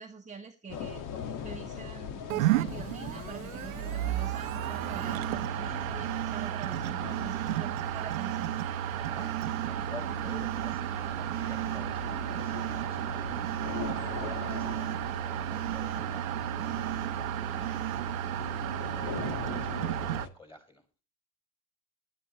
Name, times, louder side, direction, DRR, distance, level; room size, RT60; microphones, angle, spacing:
voice 1, 0.0-8.5, right 5 dB, 20° right, 3 dB, 1.3 m, -45 dB
sound 1, 0.7-20.3, left 7 dB, 50° left, 1.8 m, -42 dB
sound 2, 2.3-20.3, right 12 dB, 85° right, 0.8 m, -33 dB
sound 3, 5.0-5.5 6.0-6.5 7.1-7.6 8.1-8.7 9.2-9.7 10.2-10.8 11.3-11.8 12.3-12.9 13.4-13.9 14.5-15.0 15.5-16.0 16.6-17.1 17.6-18.0, right 19 dB, 45° right, 0.7 m, -38 dB
voice 2, 9.0-17.9 18.4-21.0, left 3 dB, 10° left, 6 dB, 5.3 m, -51 dB
18.0 x 13.0 x 3.1 m, 0.35 s
supercardioid pair, 95°, 40 cm